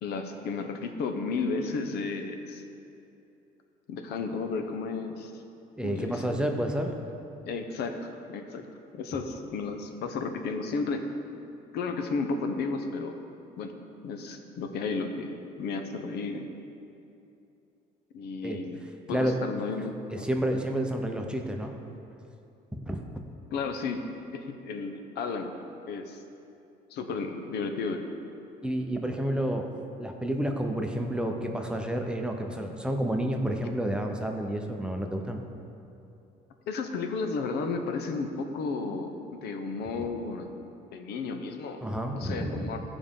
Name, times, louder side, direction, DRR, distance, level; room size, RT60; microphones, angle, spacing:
voice 1, 0.0-2.6 3.9-5.4 5.8-6.4 7.4-8.0 8.3-8.7 8.9-11.0 11.7-13.2 13.6-13.7 14.0-16.5 18.1-18.8 19.1-20.3 23.5-24.0 24.3-25.5 25.9-26.2 26.9-28.0 36.7-40.5 40.9-41.8 42.1-42.8, left 4 dB, 75° left, 5 dB, 0.8 m, -33 dB
voice 2, 5.8-6.9 18.4-19.4 20.1-21.7 22.7-23.0 28.6-29.7 30.0-35.4 41.8-42.7, right 1 dB, 5° right, 3 dB, 0.7 m, -30 dB
14.0 x 5.0 x 3.7 m, 2.7 s
cardioid pair, 110°, 17 cm